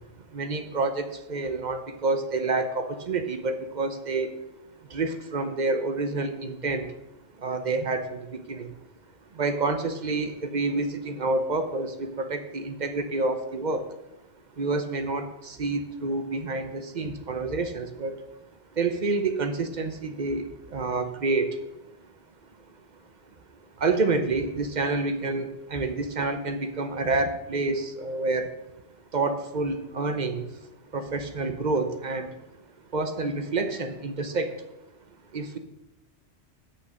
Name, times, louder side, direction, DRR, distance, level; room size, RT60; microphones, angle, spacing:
voice 1, 0.3-4.3 4.9-6.9 7.4-8.7 9.3-13.9 14.6-18.2 18.7-21.6 23.8-28.5 29.1-30.5 30.9-32.4 32.9-34.6 35.3-35.6, right 3 dB, 45° right, 8 dB, 0.9 m, -28 dB
8.5 x 6.6 x 6.5 m, 0.95 s
omnidirectional pair, 1.1 m